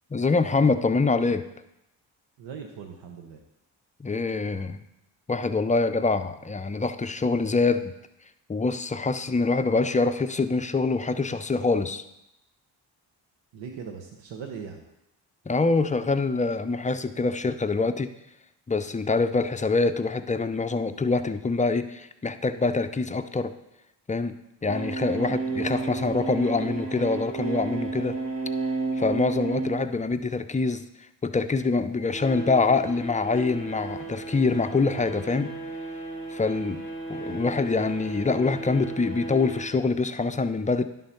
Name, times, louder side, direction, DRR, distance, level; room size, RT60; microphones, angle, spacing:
voice 1, 0.1-1.4 4.0-4.8 5.3-7.9 8.5-12.0 15.5-18.1 18.7-23.5 24.1-24.3 24.6-28.2 29.0-30.8 31.2-35.5 36.3-36.8 37.1-40.8, left 3 dB, 15° left, 10 dB, 0.5 m, -25 dB
voice 2, 2.4-3.4 13.5-14.8 25.2-25.4, right 6 dB, 80° right, 3 dB, 1.0 m, -39 dB
sound 1, 24.7-29.9 31.7-39.6, right 3 dB, 50° right, 3.0 m, -33 dB
10.5 x 3.9 x 5.7 m, 0.88 s
supercardioid pair, 60°, 44 cm